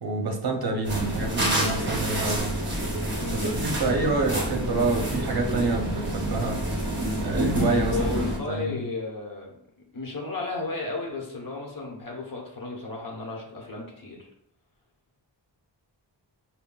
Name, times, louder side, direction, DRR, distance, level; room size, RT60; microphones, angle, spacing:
voice 1, 0.0-2.5 3.3-6.6 7.2-8.0 8.5-8.8, right 3 dB, 55° right, 3 dB, 0.7 m, -27 dB
sound 1, 0.8-8.4, right 1 dB, 25° right, 0.9 m, -28 dB
voice 2, 3.2-3.5 7.9-9.5 9.9-14.3, left 3 dB, 50° left, 0 dB, 1.0 m, -33 dB
5.4 x 2.2 x 2.3 m, 0.75 s
wide cardioid pair, 105°, 44 cm